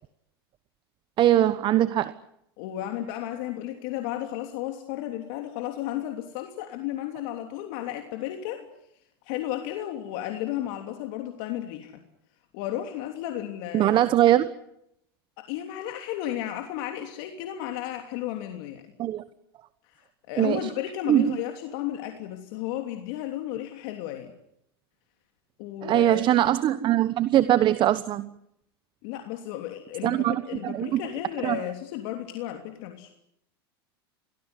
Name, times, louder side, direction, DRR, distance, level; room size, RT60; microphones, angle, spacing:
voice 1, 1.2-2.1 13.7-14.5 19.0-19.2 20.4-20.7 21.1-21.3 25.8-28.3 30.0-31.0 31.4-31.6, right 13 dB, 40° right, 14 dB, 1.2 m, -22 dB
voice 2, 2.6-8.7 9.2-12.0 12.5-14.1 15.4-18.8 19.9-24.3 25.6-26.5 29.0-33.1, left 12 dB, 60° left, 4 dB, 3.1 m, -33 dB
25.0 x 18.5 x 9.8 m, 0.79 s
hypercardioid pair, 105°, 13 cm